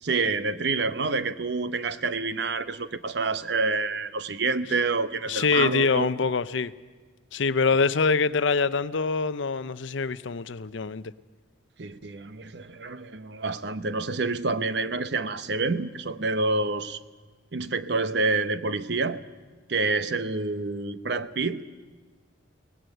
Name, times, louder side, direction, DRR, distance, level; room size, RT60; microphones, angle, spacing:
voice 1, 0.0-6.1 11.8-17.0 17.5-19.2 19.7-21.6, right 3 dB, 55° right, 0.8 m, -28 dB
voice 2, 5.3-6.7 7.3-11.0, left 4 dB, 70° left, 0.6 m, -24 dB
23.5 x 18.5 x 7.9 m
head